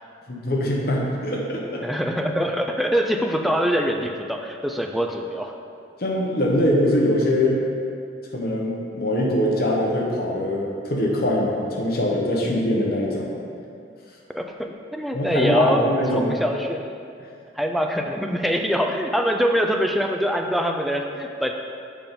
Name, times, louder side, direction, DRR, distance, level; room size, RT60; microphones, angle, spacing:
voice 1, 0.3-1.8 6.0-7.6 8.3-13.3 15.1-16.3, left 1 dB, 55° left, -2 dB, 1.0 m, -22 dB
voice 2, 1.8-5.5 14.3-17.0 17.6-21.6, equal, ahead, 3 dB, 0.3 m, -24 dB
6.8 x 5.2 x 3.7 m, 2.4 s
head